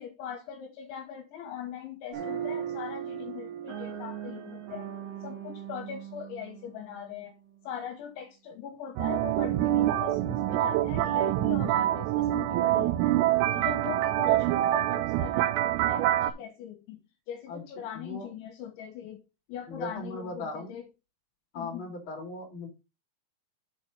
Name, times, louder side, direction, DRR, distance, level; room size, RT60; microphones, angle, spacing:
voice 1, 0.0-4.9 5.2-7.3 7.6-13.2 13.5-19.2 19.5-20.8 21.5-21.9, left 9 dB, 75° left, 3.2 m, -41 dB
sound 1, 2.1-7.6, right 9 dB, 65° right, 3.4 m, -38 dB
sound 2, 9.0-16.3, right 14 dB, 85° right, 3.3 m, -26 dB
voice 2, 17.9-18.3 19.7-20.7 21.5-22.7, left 2 dB, 35° left, 2.4 m, -38 dB
7.6 x 4.2 x 6.1 m
omnidirectional pair, 6.0 m